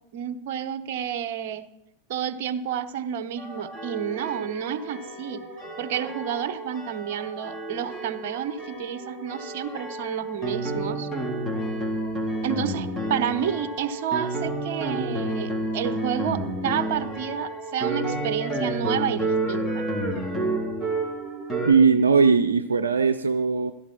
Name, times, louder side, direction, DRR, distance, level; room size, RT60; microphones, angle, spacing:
voice 1, 0.1-1.6 2.1-5.5 5.8-11.1 12.4-19.9, right 9 dB, 50° right, 13 dB, 0.9 m, -30 dB
sound 1, 3.4-21.7, right 1 dB, 10° left, 3.8 m, -30 dB
voice 2, 21.7-23.7, right 5 dB, 70° right, 8 dB, 0.6 m, -19 dB
16.0 x 13.5 x 4.4 m, 0.86 s
figure-of-eight pair, 90°, 0 cm